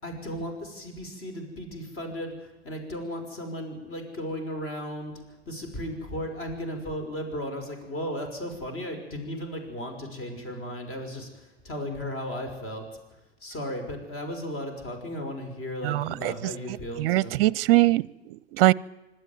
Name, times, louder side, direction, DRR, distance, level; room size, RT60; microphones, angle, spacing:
voice 1, 0.0-5.1 5.5-12.9 13.4-17.3, equal, 35° left, 5 dB, 5.5 m, -35 dB
voice 2, 15.8-16.3 17.0-18.7, right 17 dB, 55° right, 25 dB, 0.6 m, -22 dB
25.5 x 12.5 x 9.3 m, 1.1 s
hypercardioid pair, 100°, 35 cm